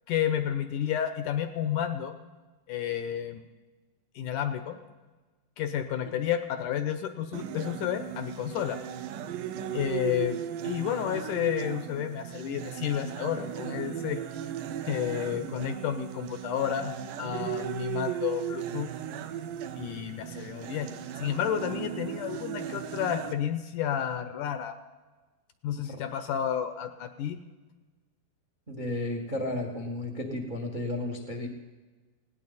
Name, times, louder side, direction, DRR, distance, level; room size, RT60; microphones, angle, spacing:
voice 1, 0.1-2.2 2.7-3.5 4.2-4.8 5.6-8.8 9.7-14.2 14.8-18.9 19.8-24.7 25.6-27.4, left 10 dB, 75° left, 9 dB, 2.0 m, -31 dB
sound 1, 7.3-23.3, right 10 dB, 70° right, 2.2 m, -36 dB
voice 2, 28.7-31.5, left 1 dB, 45° right, 2 dB, 0.6 m, -33 dB
19.5 x 17.5 x 4.1 m, 1.3 s
omnidirectional pair, 4.2 m